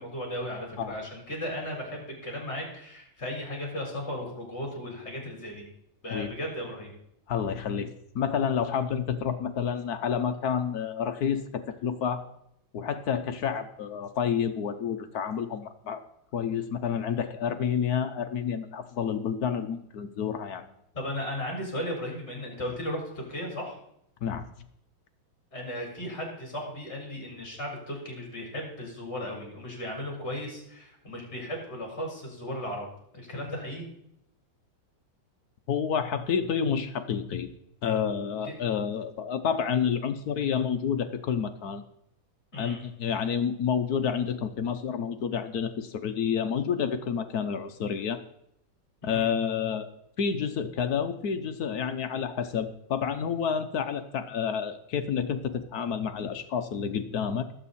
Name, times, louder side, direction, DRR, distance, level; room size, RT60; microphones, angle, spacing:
voice 1, 0.0-5.6 6.0-6.9 20.9-23.7 25.5-32.9 33.1-33.8 38.4-38.8 42.5-42.8 49.0-49.3, left 1 dB, 30° left, -1 dB, 4.8 m, -36 dB
voice 2, 7.3-12.2 12.7-16.0 16.3-20.7 24.2-24.5 35.7-37.5 37.8-41.8 42.6-48.2 49.0-49.9 50.2-57.5, left 7 dB, 60° left, 8 dB, 1.1 m, -29 dB
19.0 x 8.0 x 4.2 m, 0.76 s
omnidirectional pair, 2.2 m